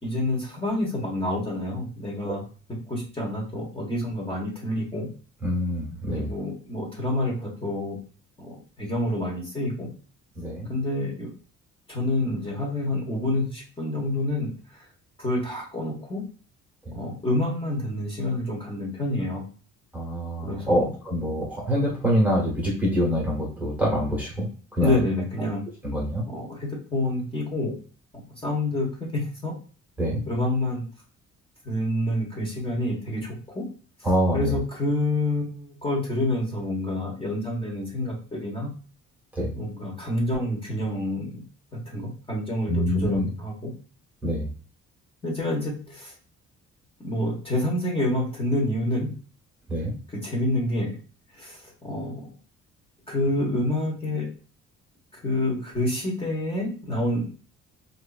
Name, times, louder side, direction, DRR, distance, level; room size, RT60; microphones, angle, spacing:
voice 1, 0.0-2.4 2.9-5.1 6.1-8.0 8.4-9.9 10.7-11.3 11.9-14.8 15.2-16.2 16.9-19.4 20.4-20.9 24.8-25.6 26.3-27.7 28.1-29.5 30.3-30.8 31.6-33.6 34.3-38.7 39.5-41.4 41.9-43.7 45.2-46.1 47.0-49.1 50.1-51.0 51.3-52.3 53.1-54.3 55.1-57.3, left 1 dB, 20° left, -3 dB, 1.3 m, -28 dB
voice 2, 5.4-6.3 10.4-10.7 16.9-17.0 19.9-24.5 24.8-25.0 25.8-26.2 30.0-30.2 34.0-34.5 39.4-39.5 42.7-43.3 44.2-44.5 49.7-49.9, equal, 5° right, -4 dB, 1.3 m, -25 dB
3.0 x 2.6 x 2.4 m, 0.39 s
cardioid pair, 90°, 30 cm